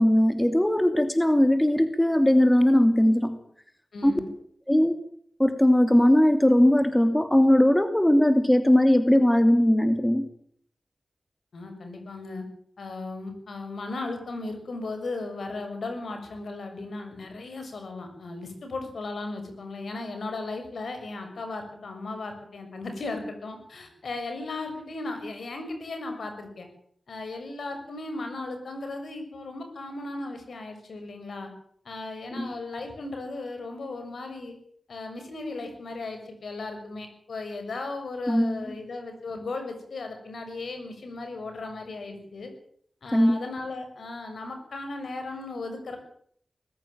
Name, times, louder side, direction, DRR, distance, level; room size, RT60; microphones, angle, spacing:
voice 1, 0.0-3.4 4.0-4.1 4.7-4.9 5.4-10.3 32.3-32.5 38.3-38.8 43.1-43.3, left 1 dB, 10° left, 8 dB, 2.8 m, -20 dB
voice 2, 3.9-4.3 11.5-12.4 12.8-26.7 27.1-31.5 31.8-34.6 34.9-42.5 43.0-46.0, left 3 dB, 85° left, 6 dB, 6.6 m, -36 dB
21.0 x 15.0 x 9.2 m, 0.65 s
wide cardioid pair, 70°, 0 cm